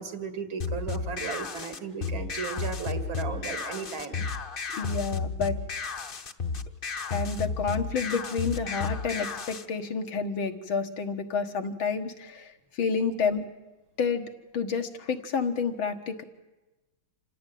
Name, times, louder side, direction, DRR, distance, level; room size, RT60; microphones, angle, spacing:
voice 1, 0.0-4.3, right 6 dB, 85° right, 8 dB, 3.1 m, -35 dB
sound 1, 0.6-9.6, left 4 dB, 40° left, 0.8 m, -33 dB
voice 2, 4.7-5.6 7.1-13.5 14.0-16.2, left 5 dB, 85° left, 6 dB, 2.4 m, -29 dB
27.0 x 17.5 x 9.4 m, 1.1 s
omnidirectional pair, 2.1 m